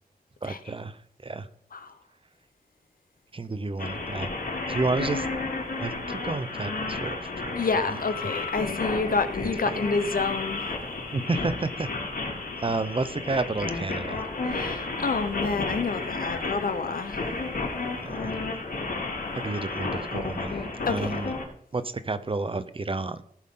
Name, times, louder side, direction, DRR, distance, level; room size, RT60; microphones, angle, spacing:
voice 1, 0.4-1.5 3.3-4.3 4.7-5.3 5.8-7.6 7.9-8.0 8.2-8.3 11.1-11.9 12.6-14.2 18.0-18.3 19.3-20.6 20.9-21.3 21.7-23.2, right 3 dB, 35° right, 0.7 m, -30 dB
sound 1, 3.8-21.4, left 3 dB, 90° left, 3.9 m, -32 dB
voice 2, 7.6-10.6 14.4-17.2 20.9-21.2, left 4 dB, 65° left, 1.0 m, -28 dB
18.5 x 7.6 x 3.8 m
wide cardioid pair, 125°, 16 cm